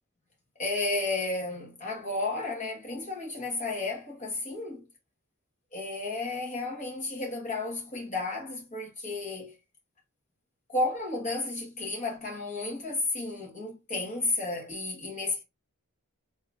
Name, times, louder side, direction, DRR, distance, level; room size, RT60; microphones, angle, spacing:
voice 1, 0.6-4.9 5.7-9.6 10.7-15.4, left 2 dB, 35° left, 1.2 m, -32 dB
3.0 x 2.4 x 3.3 m
head